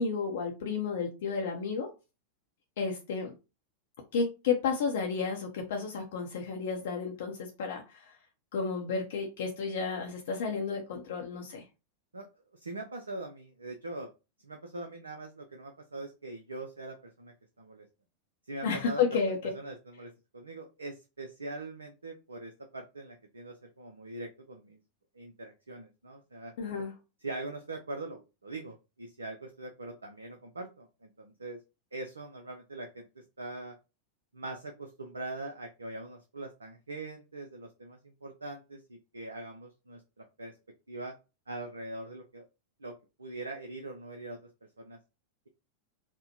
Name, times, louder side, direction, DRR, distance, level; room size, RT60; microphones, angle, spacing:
voice 1, 0.0-1.9 2.8-3.3 4.1-8.2 8.5-11.6 18.6-19.4 26.6-26.9, left 5 dB, 55° left, 2 dB, 0.6 m, -32 dB
voice 2, 12.5-14.1 14.4-17.9 18.5-19.2 19.5-24.8 25.1-26.5 27.2-31.6 31.9-33.7 34.3-40.5 40.9-41.1 41.5-42.4 42.8-42.9 43.2-44.4 44.8-45.0, right 2 dB, 75° right, 5 dB, 0.4 m, -42 dB
4.3 x 2.1 x 2.9 m, 0.29 s
figure-of-eight pair, 90°, 0 cm